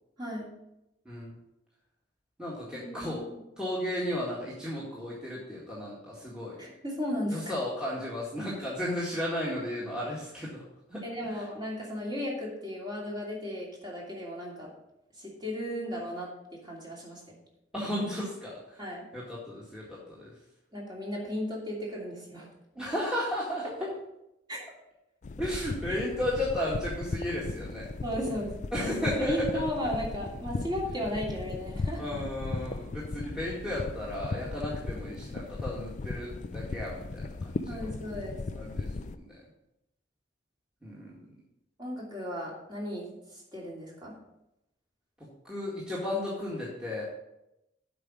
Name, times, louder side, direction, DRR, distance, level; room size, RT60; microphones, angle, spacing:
voice 1, 0.2-0.5 2.7-3.4 6.6-7.5 11.0-14.7 15.2-17.4 18.8-19.1 20.7-22.5 23.8-23.9 24.5-24.6 25.9-26.0 28.0-28.5 29.0-32.0 37.6-38.4 41.8-44.1, equal, 25° right, -4 dB, 2.7 m, -35 dB
voice 2, 2.4-3.2 3.6-6.6 7.3-10.6 10.9-11.4 17.7-18.8 19.1-20.3 22.8-23.7 25.4-27.9 28.7-29.6 32.0-37.2 37.7-37.9 38.5-39.4 40.8-41.2 45.4-47.0, left 1 dB, 5° right, -7 dB, 1.9 m, -34 dB
sound 1, 25.2-39.2, left 3 dB, 40° left, 0.4 m, -37 dB
8.1 x 5.2 x 7.4 m, 0.87 s
head